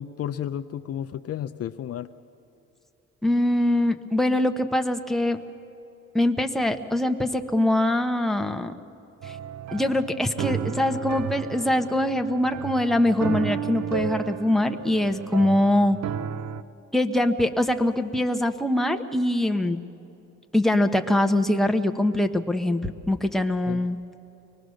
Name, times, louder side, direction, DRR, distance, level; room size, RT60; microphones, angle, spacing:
voice 1, 0.0-2.1 23.7-23.8, left 10 dB, 55° left, 10 dB, 0.6 m, -32 dB
voice 2, 3.2-5.4 6.1-8.7 9.3-9.4 9.7-16.0 16.9-19.8 20.5-24.0, left 1 dB, ahead, 5 dB, 1.0 m, -23 dB
sound 1, 9.2-16.6, right 8 dB, 65° right, 0.7 m, -33 dB
24.0 x 19.5 x 6.4 m, 2.8 s
cardioid pair, 90°, 30 cm